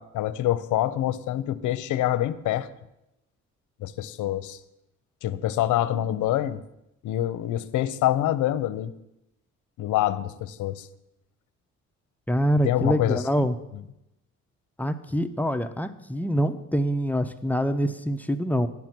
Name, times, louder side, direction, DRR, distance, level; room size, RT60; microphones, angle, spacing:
voice 1, 0.0-2.7 3.8-4.6 5.2-6.6 7.0-8.9 9.8-10.9 12.6-13.5, left 13 dB, 80° left, 14 dB, 0.6 m, -26 dB
voice 2, 12.3-13.5 14.8-18.7, equal, 5° left, 8 dB, 0.6 m, -25 dB
9.2 x 7.2 x 6.0 m, 0.88 s
cardioid pair, 90°, 30 cm